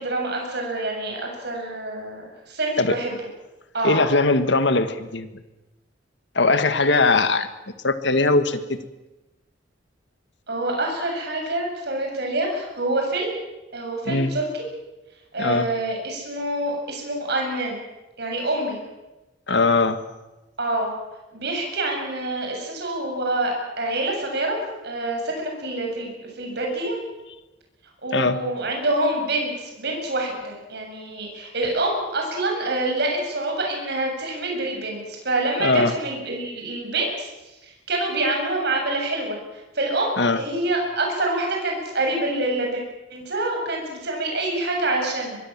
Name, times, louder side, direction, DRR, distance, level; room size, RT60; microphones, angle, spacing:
voice 1, 0.0-3.1 3.7-4.0 10.5-13.3 13.7-14.7 15.3-17.8 18.2-18.8 20.6-20.9 21.3-24.6 24.8-26.1 26.4-27.0 28.0-37.3 37.9-39.4 39.7-42.8 43.1-45.4, right 2 dB, 60° right, 1 dB, 7.4 m, -26 dB
voice 2, 3.8-5.3 6.4-7.5 7.8-8.8 14.1-14.3 15.4-15.7 19.5-20.0 28.1-28.4 35.6-35.9 40.2-40.4, left 3 dB, 65° left, 10 dB, 1.7 m, -20 dB
24.5 x 22.0 x 7.5 m, 1.0 s
head